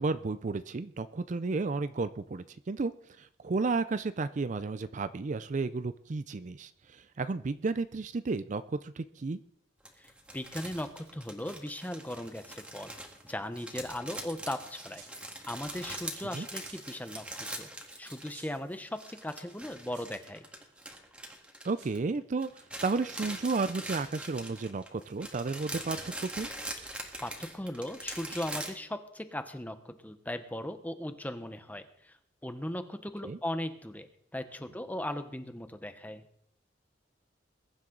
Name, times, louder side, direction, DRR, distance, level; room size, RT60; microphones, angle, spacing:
voice 1, 0.0-2.9 3.2-9.4 16.3-16.5 21.6-26.5 33.2-33.4, right 3 dB, 45° right, 13 dB, 0.4 m, -33 dB
sound 1, 9.9-18.6 18.8-22.2 22.4-28.7, right 1 dB, 5° right, 1.9 m, -43 dB
voice 2, 10.0-12.9 13.2-15.0 15.5-17.7 18.0-20.5 26.9-32.2 32.4-34.1 34.3-36.2, left 1 dB, 10° left, 9 dB, 1.0 m, -38 dB
sound 2, 13.6-13.9 14.5-15.6 16.2-17.0 17.9-18.0 18.2-18.6 19.8-20.3 21.7-22.0 23.4-23.7, right 6 dB, 85° right, 7.1 m, -56 dB
21.5 x 10.5 x 3.9 m, 0.68 s
head